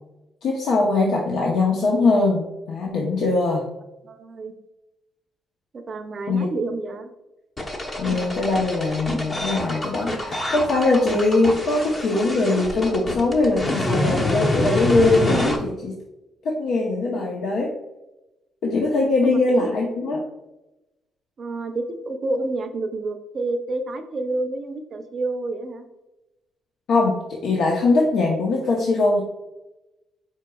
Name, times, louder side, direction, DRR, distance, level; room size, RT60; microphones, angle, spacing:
voice 1, 0.4-3.6 6.3-6.5 8.0-15.9 16.4-17.7 18.6-20.2 26.9-29.2, left 3 dB, 75° left, -1 dB, 0.7 m, -21 dB
voice 2, 4.0-4.5 5.7-7.1 19.2-19.7 21.4-25.8, right 2 dB, 45° right, 7 dB, 0.6 m, -29 dB
sound 1, 7.6-15.6, left 1 dB, 35° left, 0.8 m, -26 dB
4.6 x 4.5 x 2.2 m, 0.97 s
cardioid pair, 90°, 0 cm